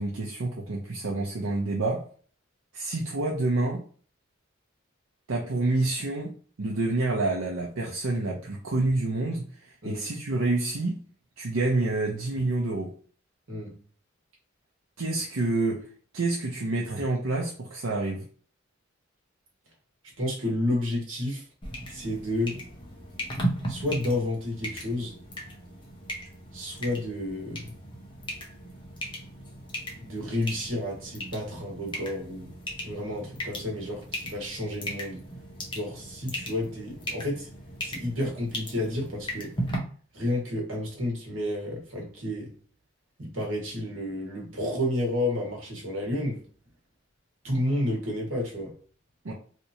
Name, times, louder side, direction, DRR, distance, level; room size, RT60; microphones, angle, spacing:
voice 1, 0.0-2.1 2.7-3.8 5.3-11.0 11.4-12.9 15.0-15.8 16.1-18.2 49.2-49.3, right 2 dB, 90° right, 0.7 m, -28 dB
voice 2, 20.2-21.4 21.9-22.6 23.7-25.2 26.5-27.7 30.0-32.5 32.8-35.2 35.7-37.5 37.8-39.5 40.1-42.5 43.2-46.4 47.4-48.8, left 1 dB, 75° right, 1.5 m, -31 dB
sound 1, 21.6-39.8, equal, 25° left, 0.9 m, -37 dB
3.3 x 2.9 x 2.8 m
head